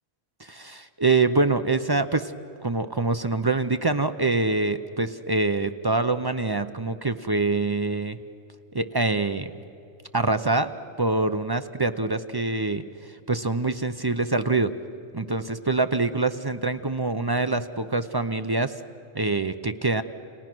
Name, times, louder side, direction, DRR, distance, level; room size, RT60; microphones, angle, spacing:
voice 1, 0.4-2.3 2.6-8.2 8.7-9.5 10.1-14.7 15.1-18.7 19.1-20.0, right 3 dB, 35° right, 10 dB, 0.3 m, -25 dB
30.0 x 29.0 x 6.2 m, 2.9 s
omnidirectional pair, 1.5 m